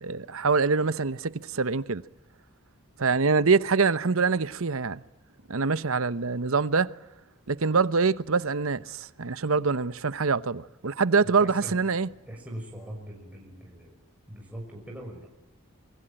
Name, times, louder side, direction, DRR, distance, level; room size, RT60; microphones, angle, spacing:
voice 1, 0.0-2.0 3.0-5.0 5.5-6.9 7.5-12.1, right 4 dB, 75° right, 0.9 m, -25 dB
voice 2, 11.4-11.8 12.3-13.9 14.3-15.3, equal, 5° right, 6.2 m, -41 dB
28.0 x 24.0 x 9.0 m
head